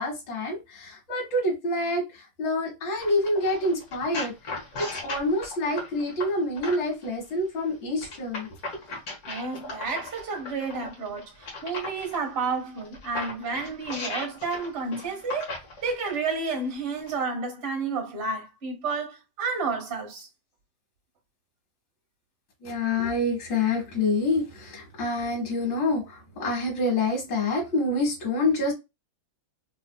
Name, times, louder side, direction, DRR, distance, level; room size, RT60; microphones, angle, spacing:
voice 1, 0.0-8.5 22.6-28.7, left 2 dB, 70° left, 2.2 m, -27 dB
sound 1, 3.0-7.1 8.0-12.2 12.8-16.2 17.0-17.1, left 3 dB, 50° left, 1.6 m, -37 dB
voice 2, 9.3-20.3, right 4 dB, 35° right, 1.7 m, -31 dB
4.3 x 2.6 x 2.2 m
omnidirectional pair, 2.1 m